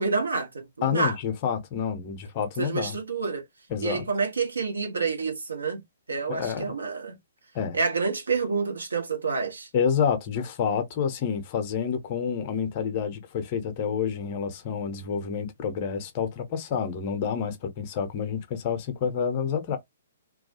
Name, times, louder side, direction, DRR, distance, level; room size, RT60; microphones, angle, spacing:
voice 1, 0.0-1.2 2.6-3.4 3.8-5.8 6.1-7.2 7.7-9.7, right 4 dB, 70° right, 1.0 m, -28 dB
voice 2, 0.8-3.0 3.7-4.1 6.3-6.6 7.5-7.8 9.7-19.8, left 7 dB, 35° left, 0.7 m, -28 dB
2.3 x 2.3 x 2.7 m
figure-of-eight pair, 120°, 0 cm